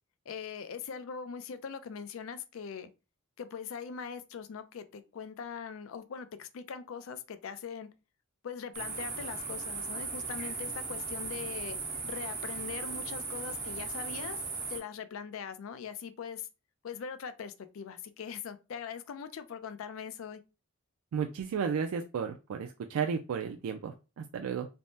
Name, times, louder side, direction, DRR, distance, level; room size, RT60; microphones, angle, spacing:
voice 1, 0.3-2.9 3.4-7.9 8.4-11.8 12.0-14.4 14.7-16.5 16.8-20.4, left 6 dB, 75° left, 0.4 m, -41 dB
sound 1, 8.7-14.8, right 4 dB, 40° right, 1.1 m, -37 dB
voice 2, 21.1-24.7, right 6 dB, 90° right, 0.3 m, -33 dB
3.3 x 2.0 x 2.6 m
head